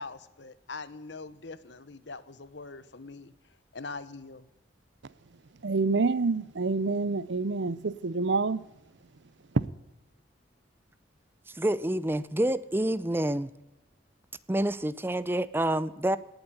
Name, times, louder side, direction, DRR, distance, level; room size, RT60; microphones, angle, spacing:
voice 1, 0.0-3.3 3.7-4.5, left 3 dB, 70° left, 14 dB, 1.1 m, -42 dB
voice 2, 5.6-8.6, right 3 dB, 75° right, 19 dB, 0.7 m, -27 dB
voice 3, 11.6-13.5 14.5-16.2, right 1 dB, 10° right, 17 dB, 0.5 m, -28 dB
18.5 x 8.0 x 9.2 m, 0.99 s
head